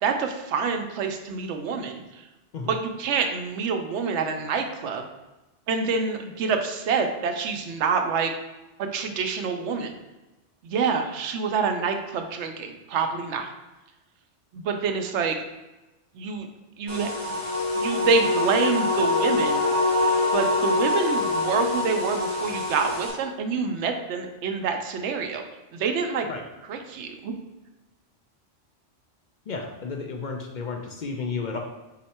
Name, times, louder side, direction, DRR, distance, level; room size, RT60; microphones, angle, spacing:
voice 1, 0.0-2.2 2.7-5.1 5.7-8.3 8.8-10.0 10.6-13.5 14.5-15.4 16.1-16.5 16.8-17.4 17.7-19.6 20.3-25.4 25.7-26.3 26.7-27.3, right 5 dB, 80° right, 5 dB, 0.9 m, -27 dB
sound 1, 16.9-23.1, left 2 dB, 25° left, 1.2 m, -25 dB
voice 2, 29.5-31.6, left 4 dB, 60° left, 2 dB, 0.5 m, -32 dB
4.3 x 2.8 x 4.2 m, 1.1 s
omnidirectional pair, 1.2 m